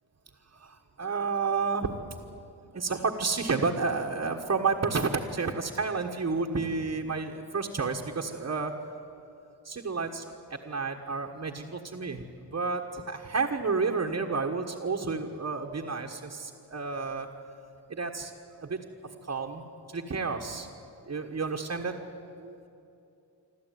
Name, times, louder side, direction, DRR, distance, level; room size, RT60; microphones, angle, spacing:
voice 1, 0.5-1.9 2.6-8.7 9.6-10.3 10.6-12.3 12.5-17.3 17.9-18.3 18.6-18.8 19.3-19.6 19.9-20.7 21.1-21.9 22.4-22.7, right 4 dB, 35° right, 1 dB, 1.5 m, -30 dB
25.5 x 13.0 x 9.4 m, 2.7 s
cardioid pair, 95°, 45 cm